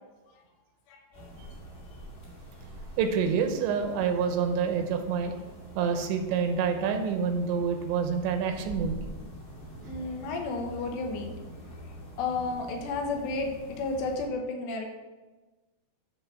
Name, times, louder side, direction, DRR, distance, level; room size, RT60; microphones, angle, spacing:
voice 1, 0.9-1.3 9.8-11.4 12.2-14.9, left 3 dB, 80° left, 2 dB, 3.0 m, -32 dB
sound 1, 1.1-14.3, right 1 dB, 20° left, 1.8 m, -45 dB
voice 2, 3.0-5.3 5.8-9.0, right 6 dB, 85° right, 6 dB, 3.1 m, -27 dB
10.0 x 4.0 x 5.6 m, 1.2 s
omnidirectional pair, 5.2 m